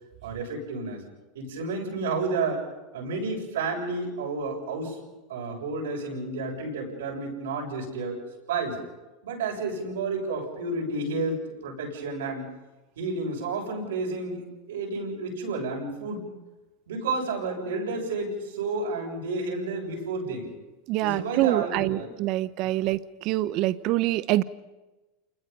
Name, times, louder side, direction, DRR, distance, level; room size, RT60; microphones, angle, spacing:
voice 1, 0.2-1.0 1.3-2.7 2.9-5.0 5.3-8.2 8.5-8.8 9.2-12.5 13.0-16.2 16.9-20.5 21.0-22.1 22.6-22.8, right 3 dB, 85° right, -1 dB, 7.1 m, -31 dB
voice 2, 20.9-23.0 23.2-24.4, right 16 dB, 55° right, 16 dB, 1.0 m, -25 dB
28.0 x 21.0 x 5.5 m, 1.1 s
hypercardioid pair, 105°, 0 cm